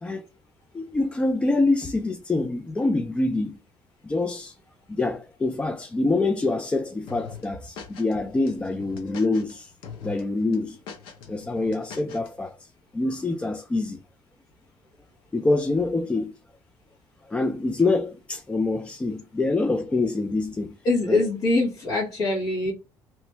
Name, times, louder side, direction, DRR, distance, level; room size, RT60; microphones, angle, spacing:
voice 1, 0.7-3.6 4.0-4.6 4.9-9.7 10.0-10.8 11.3-14.0 15.3-16.3 17.2-20.8 21.1-21.2, left 2 dB, 15° left, 0.3 m, -25 dB
sound 1, 7.1-8.1 8.4-9.5 9.8-10.2 10.5-12.3, left 6 dB, 80° left, 1.0 m, -41 dB
voice 2, 20.8-22.7, left 2 dB, 65° left, 1.9 m, -23 dB
3.2 x 3.1 x 3.2 m
cardioid pair, 135°, 8 cm